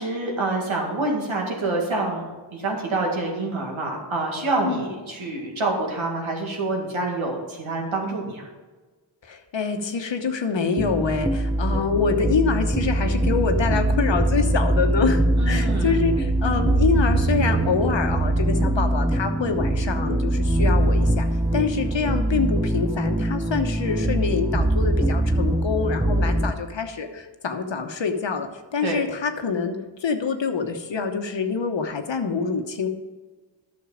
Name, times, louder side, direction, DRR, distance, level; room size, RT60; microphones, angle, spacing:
voice 1, 0.0-8.5 15.4-16.0 28.8-29.0, right 2 dB, 80° right, -1 dB, 2.2 m, -27 dB
voice 2, 9.2-21.3 21.5-29.7 30.0-32.9, left 5 dB, 65° left, 6 dB, 1.1 m, -26 dB
sound 1, 10.8-26.5, right 1 dB, 10° right, 0.7 m, -22 dB
10.5 x 6.4 x 5.0 m, 1.3 s
cardioid pair, 55°, 47 cm